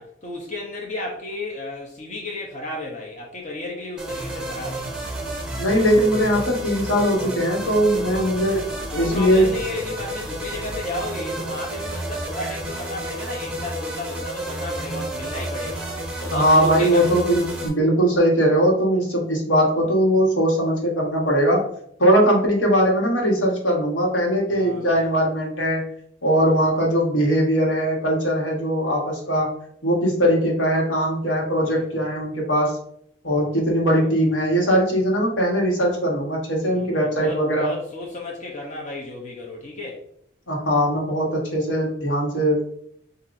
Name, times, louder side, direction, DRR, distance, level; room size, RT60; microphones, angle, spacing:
voice 1, 0.0-4.9 7.7-8.3 8.9-15.9 16.2-17.2 24.5-25.1 31.6-32.1 34.0-34.2 36.7-40.0, left 2 dB, 40° left, -1 dB, 0.9 m, -33 dB
sound 1, 4.0-17.7, right 1 dB, 5° right, 0.9 m, -31 dB
voice 2, 5.6-8.7 8.9-9.5 16.3-21.6 22.0-25.9 26.2-29.5 29.8-32.7 33.2-37.7 40.5-42.6, equal, 85° left, -1 dB, 1.5 m, -20 dB
7.0 x 2.7 x 2.6 m, 0.67 s
head